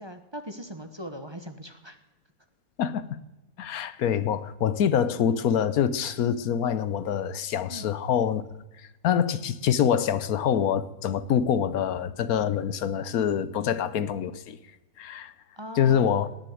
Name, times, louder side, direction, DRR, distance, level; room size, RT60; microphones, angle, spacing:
voice 1, 0.0-2.0 7.7-7.9 13.6-13.8 15.6-16.2, equal, 20° right, 1.1 m, -40 dB
voice 2, 2.8-3.2 3.6-8.4 9.0-14.6 15.0-15.3 15.8-16.3, left 8 dB, 80° left, 1.2 m, -25 dB
19.0 x 6.6 x 9.2 m
omnidirectional pair, 1.6 m